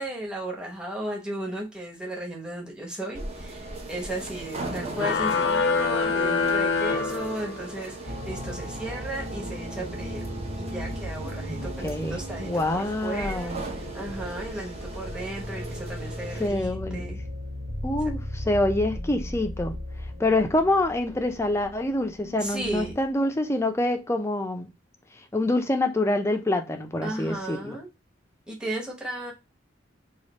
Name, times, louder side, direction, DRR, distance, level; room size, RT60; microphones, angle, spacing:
voice 1, 0.0-10.2 10.5-17.2 22.4-22.9 27.0-27.9 28.5-29.3, right 1 dB, 5° right, 0.9 m, -35 dB
sound 1, 3.1-16.5, right 2 dB, 35° right, 0.6 m, -39 dB
sound 2, 4.9-7.8, left 4 dB, 60° left, 0.5 m, -25 dB
sound 3, 8.1-23.1, equal, 75° right, 1.3 m, -37 dB
voice 2, 11.5-13.6 16.4-17.1 17.8-19.7 20.2-24.7 25.3-27.8, left 1 dB, 15° left, 0.4 m, -26 dB
3.2 x 2.4 x 3.9 m
head